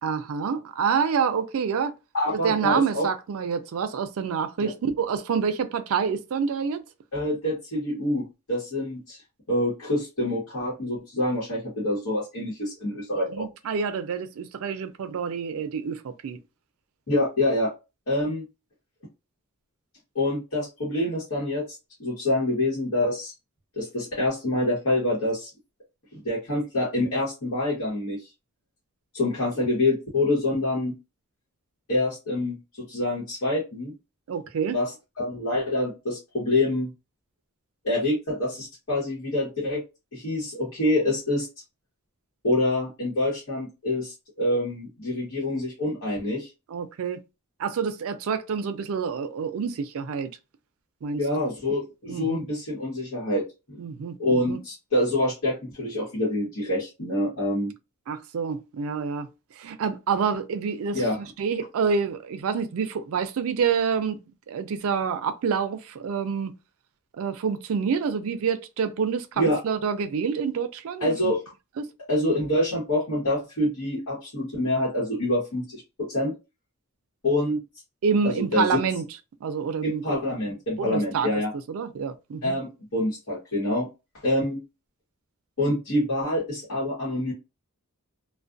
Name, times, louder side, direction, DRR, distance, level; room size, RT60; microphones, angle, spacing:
voice 1, 0.0-2.0 2.4-6.8 13.3-16.4 34.3-34.8 46.7-47.2 47.6-50.3 51.0-51.2 52.1-52.4 53.8-54.6 58.1-59.3 59.6-61.0 61.4-64.2 64.5-66.5 67.1-71.3 71.8-71.9 78.0-79.1 79.4-80.2 80.8-81.4 81.7-82.5, right 6 dB, 65° right, 0.4 m, -27 dB
voice 2, 2.1-3.1 4.6-4.7 7.1-9.2 9.5-13.5 17.1-17.7 18.1-18.4 20.1-21.6 22.0-23.3 23.8-25.5 26.1-28.2 29.1-30.9 31.9-33.9 34.7-36.9 37.8-39.8 40.1-41.5 42.4-46.5 51.1-53.8 54.2-57.7 60.9-61.2 69.4-69.6 71.0-71.4 72.1-76.3 77.2-77.6 78.2-78.8 79.8-81.5 82.4-83.9 84.2-84.6 85.6-87.3, left 1 dB, 60° left, 1.0 m, -26 dB
2.4 x 2.1 x 2.5 m
head